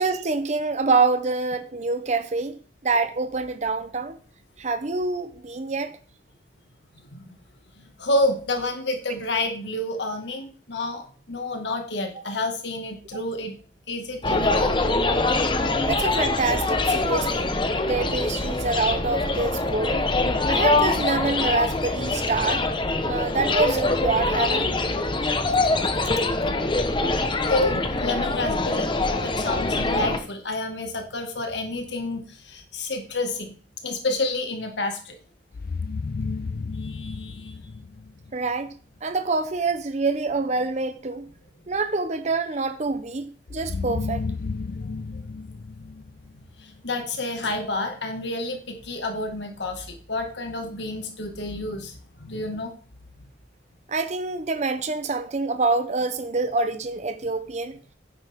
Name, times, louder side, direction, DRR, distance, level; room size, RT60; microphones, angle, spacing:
voice 1, 0.0-4.2 4.6-5.9 15.8-17.5 17.9-20.1 20.5-22.7 23.0-24.7 38.3-38.7 39.0-41.3 41.7-44.2 53.9-57.8, right 3 dB, 40° right, 0.8 m, -26 dB
voice 2, 7.8-13.6 13.9-14.7 27.4-28.9 29.2-33.5 33.8-35.2 36.8-37.5 46.6-52.7, left 2 dB, 75° left, 1.9 m, -29 dB
sound 1, 14.2-30.2, left 2 dB, 25° left, 1.0 m, -24 dB
sound 2, 35.5-38.5 43.5-46.7, left 4 dB, 55° left, 0.5 m, -32 dB
11.0 x 9.3 x 3.6 m
head